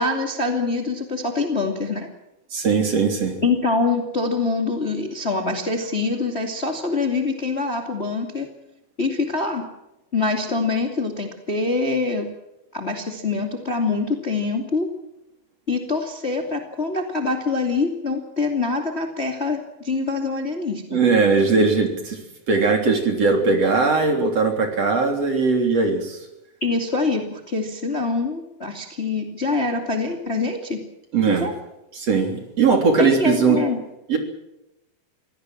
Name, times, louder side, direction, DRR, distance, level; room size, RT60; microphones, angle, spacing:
voice 1, 0.0-2.1 3.4-8.5 9.0-9.6 10.1-12.3 12.7-14.9 15.7-21.0 26.6-30.8 31.2-31.5 33.0-33.8, left 3 dB, 20° left, 4 dB, 2.3 m, -24 dB
voice 2, 2.5-3.4 20.9-22.2 22.5-26.2 31.1-31.5 31.9-33.6 34.1-34.2, right 4 dB, 45° right, 4 dB, 4.3 m, -19 dB
24.0 x 17.5 x 7.5 m, 0.90 s
omnidirectional pair, 4.2 m